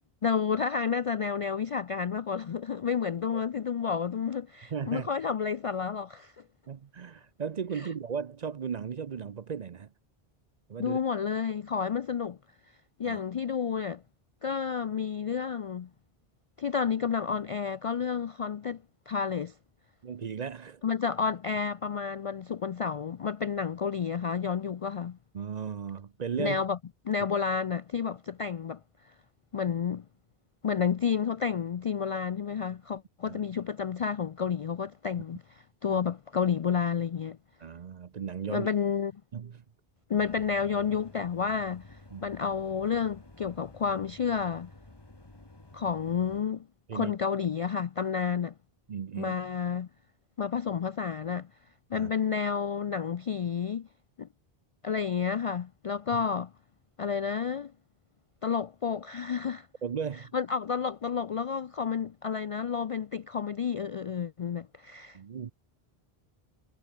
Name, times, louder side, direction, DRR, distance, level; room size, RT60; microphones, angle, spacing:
voice 1, 0.2-6.3 7.7-7.9 10.8-12.4 13.0-14.0 14.4-15.9 16.6-19.5 20.8-25.2 26.4-26.8 27.1-28.8 29.5-30.0 30.6-35.4 35.8-37.4 38.5-39.1 40.1-44.7 45.7-46.7 46.9-48.5 49.2-49.9 50.4-51.5 51.9-53.9 54.2-54.3 54.8-56.5 57.0-57.7 58.4-59.7 60.3-65.2, left 6 dB, 55° left, 0.4 m, -30 dB
voice 2, 4.7-5.1 6.7-9.9 10.7-11.0 13.0-13.2 20.0-20.8 25.3-26.6 33.3-33.4 35.9-36.0 37.6-38.7 39.3-39.6 42.1-42.3 46.9-47.1 48.9-49.3 51.9-52.1 59.8-60.3 65.1-65.5, right 7 dB, 50° right, 0.7 m, -36 dB
Laundry room ambiance, 40.1-46.4, left 2 dB, 25° left, 1.8 m, -52 dB
omnidirectional pair, 1.0 m